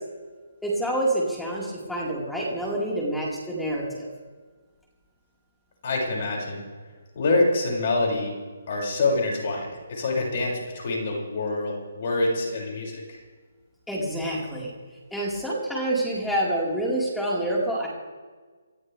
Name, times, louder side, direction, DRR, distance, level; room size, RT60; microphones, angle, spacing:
voice 1, 0.6-4.1 13.9-14.7 15.1-17.9, right 1 dB, 5° left, -4 dB, 4.7 m, -27 dB
voice 2, 5.8-6.6 7.1-8.3 8.7-13.0, left 2 dB, 45° left, -2 dB, 6.6 m, -26 dB
28.5 x 13.5 x 3.5 m, 1.4 s
hypercardioid pair, 150°, 0 cm